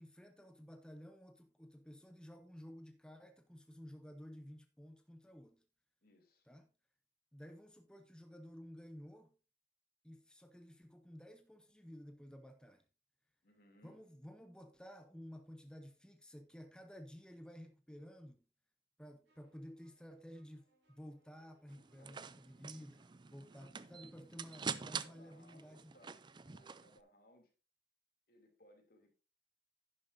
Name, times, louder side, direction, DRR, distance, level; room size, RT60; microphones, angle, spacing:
voice 1, 0.0-5.6 6.5-6.7 7.3-9.3 10.0-12.8 13.8-18.4 19.0-25.9, equal, 5° left, 0.8 m, -54 dB
voice 2, 6.0-6.5 13.4-14.1 22.0-22.2 25.0-26.3 26.5-27.5 28.3-29.1, left 1 dB, 55° left, 3.0 m, -66 dB
sound 1, 19.2-26.9, right 3 dB, 85° right, 5.3 m, -75 dB
sound 2, 21.7-27.0, right 6 dB, 25° right, 0.4 m, -46 dB
11.0 x 10.5 x 2.7 m
head